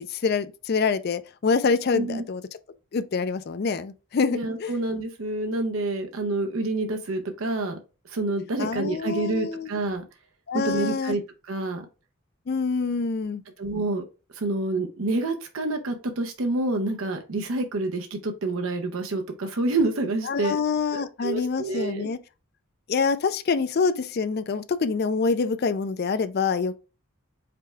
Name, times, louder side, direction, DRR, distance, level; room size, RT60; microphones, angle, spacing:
voice 1, 0.0-2.4 2.9-4.7 8.6-9.7 10.5-11.2 12.5-13.4 20.3-22.2 22.9-26.9, left 4 dB, 45° left, 0.4 m, -26 dB
voice 2, 1.9-2.2 4.3-7.8 8.0-10.0 10.5-11.9 13.6-14.0 14.3-20.6 20.9-22.1, right 2 dB, 70° right, 0.6 m, -28 dB
5.0 x 2.3 x 4.3 m
head